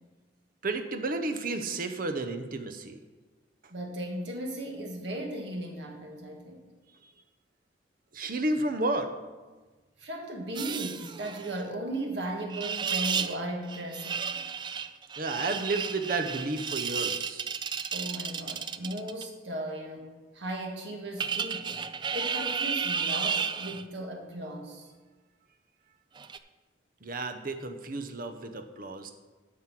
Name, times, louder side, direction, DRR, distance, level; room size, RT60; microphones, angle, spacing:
voice 1, 0.6-3.0 8.1-9.1 15.2-17.5 27.0-29.1, right 2 dB, 50° right, 7 dB, 0.8 m, -32 dB
voice 2, 3.7-6.6 10.0-14.3 17.9-21.7 22.1-24.9, right 1 dB, 65° right, 1 dB, 1.7 m, -36 dB
sound 1, 10.5-11.6 12.5-13.4 13.7-19.2 21.2-23.8 26.2-26.4, right 6 dB, 25° right, 0.3 m, -33 dB
9.5 x 6.4 x 6.0 m, 1.3 s
head